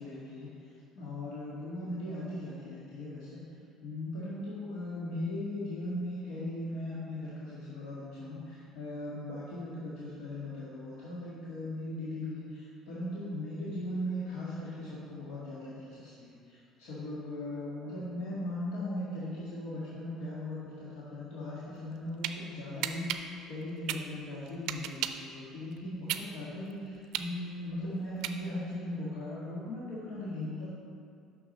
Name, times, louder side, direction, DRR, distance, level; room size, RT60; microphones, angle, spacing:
voice 1, 0.0-3.4 3.8-30.7, left 1 dB, 85° left, -9 dB, 1.8 m, -38 dB
sound 1, 21.8-22.3 22.8-25.3 25.7-28.7, right 12 dB, 75° right, 0.4 m, -35 dB
6.3 x 6.1 x 5.4 m, 2.3 s
cardioid pair, 125°, 0 cm